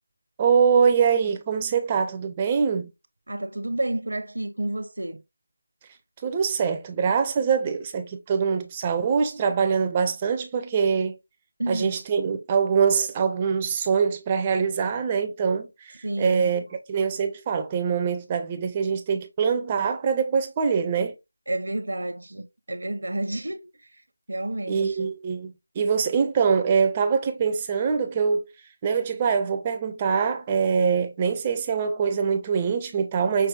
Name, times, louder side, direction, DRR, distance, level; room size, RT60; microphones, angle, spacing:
voice 1, 0.4-2.9 6.2-11.2 11.7-16.6 16.9-21.2 24.7-28.5 28.8-33.5, right 6 dB, 15° right, 0.5 m, -24 dB
voice 2, 3.3-5.2 11.6-12.0 16.0-16.6 21.5-23.7 24.3-25.1, right 1 dB, 60° right, 0.7 m, -30 dB
5.9 x 3.3 x 2.2 m
figure-of-eight pair, 165°, 0 cm